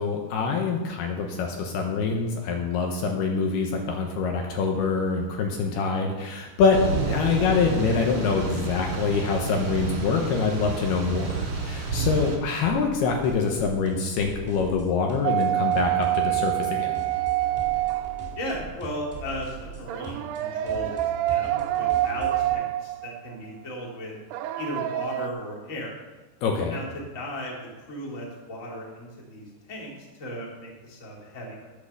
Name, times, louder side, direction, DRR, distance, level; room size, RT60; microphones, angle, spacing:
voice 1, 0.0-6.8 7.1-16.9 26.4-26.8, left 5 dB, 75° left, 2 dB, 2.9 m, -25 dB
Thunder / Rain, 6.7-12.4, right 4 dB, 40° right, 2.6 m, -30 dB
voice 2, 12.0-12.3 18.4-21.0 21.3-24.1 24.6-26.0 26.7-31.7, equal, 25° left, -3 dB, 2.3 m, -36 dB
sound 1, 12.6-22.5, right 2 dB, 20° right, 1.2 m, -40 dB
sound 2, 15.2-18.7 19.9-23.3 24.3-25.3, right 15 dB, 80° right, 2.4 m, -26 dB
11.5 x 8.4 x 6.7 m, 1.2 s
omnidirectional pair, 5.0 m